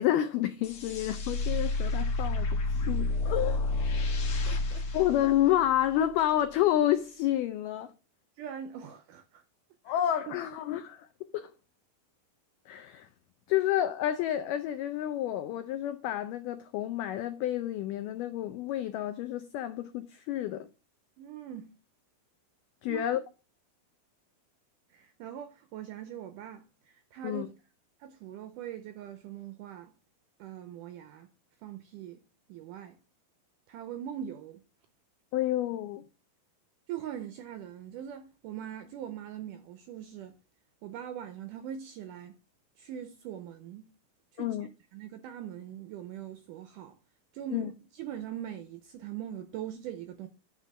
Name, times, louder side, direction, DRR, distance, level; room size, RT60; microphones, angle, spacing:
voice 1, 0.0-3.7 4.9-7.9 9.9-11.1 11.3-11.5 12.7-13.1 13.5-20.7 22.8-23.2 27.2-27.5 35.3-36.0 44.4-44.7 47.5-47.7, left 12 dB, 85° left, 1.8 m, -29 dB
sound 1, 0.6-6.0, left 3 dB, 65° left, 1.4 m, -30 dB
voice 2, 4.5-4.8 8.4-9.4 9.9-10.0 10.3-10.4 10.7-10.8 21.2-21.7 22.9-23.2 24.9-27.5 28.0-29.9 30.4-31.3 31.6-32.2 32.5-33.0 33.7-34.6 36.9-40.3 40.8-42.4 42.8-43.9 44.3-44.6 44.9-47.0 47.3-50.3, right 10 dB, 85° right, 1.9 m, -42 dB
9.9 x 3.6 x 6.5 m
omnidirectional pair, 4.4 m